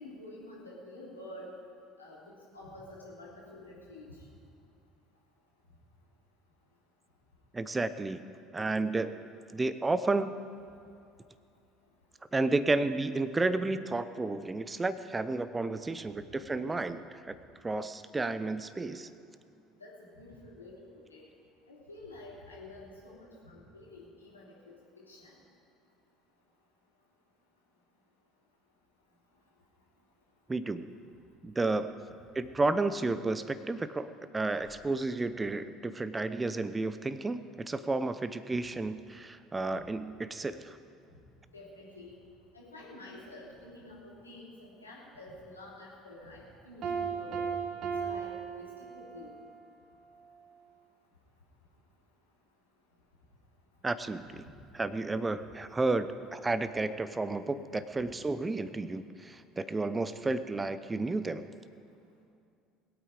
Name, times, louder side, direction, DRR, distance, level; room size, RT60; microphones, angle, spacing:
voice 1, 0.0-1.5 2.0-4.2 19.8-21.2 21.7-24.6 25.1-25.3 39.7-39.8 41.1-41.2 41.5-42.1 42.5-47.3 47.8-48.3 48.6-49.3 57.9-58.0, left 2 dB, 90° left, -5 dB, 3.0 m, -49 dB
voice 2, 7.5-8.2 8.5-9.2 9.5-10.3 12.3-17.4 17.6-19.1 30.5-30.9 31.4-31.9 32.3-40.8 53.8-54.5 54.7-61.4, right 3 dB, 20° right, 13 dB, 0.8 m, -32 dB
Piano, 46.8-49.4, right 6 dB, 50° right, 2.0 m, -36 dB
21.5 x 8.7 x 5.1 m, 2.4 s
figure-of-eight pair, 60°, 0 cm